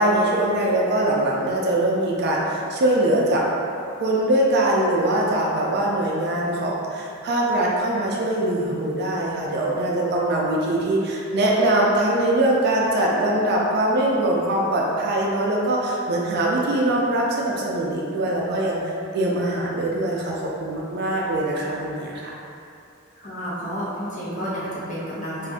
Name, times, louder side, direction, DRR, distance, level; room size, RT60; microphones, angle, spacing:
voice 1, 0.0-3.4 4.0-22.3, right 1 dB, 50° right, -3 dB, 0.4 m, -22 dB
voice 2, 23.2-25.5, equal, 35° left, -8 dB, 0.8 m, -30 dB
2.7 x 2.4 x 3.4 m, 2.6 s
head